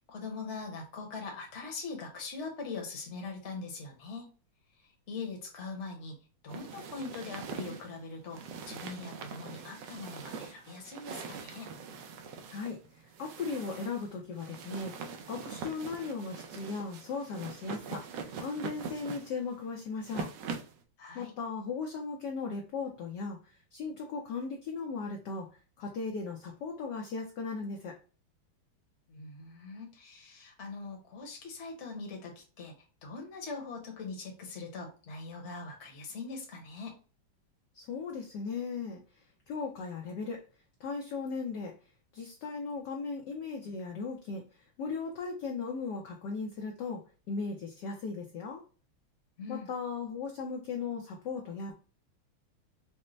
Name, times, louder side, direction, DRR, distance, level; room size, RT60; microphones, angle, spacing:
voice 1, 0.1-4.3 5.1-6.2 6.4-8.4 8.7-11.7 21.0-21.3 29.1-36.9 49.4-49.7, left 4 dB, 40° left, 1 dB, 1.1 m, -42 dB
sound 1, 6.5-20.8, right 5 dB, 75° right, 1.1 m, -43 dB
voice 2, 13.2-18.0 18.4-20.3 21.1-23.4 23.7-25.5 25.8-27.9 37.7-39.0 39.5-40.4 40.8-41.7 42.1-44.4 44.8-47.0 47.3-48.6 49.5-51.7, left 4 dB, 65° left, 1 dB, 1.1 m, -37 dB
5.2 x 2.1 x 3.1 m, 0.36 s
omnidirectional pair, 2.3 m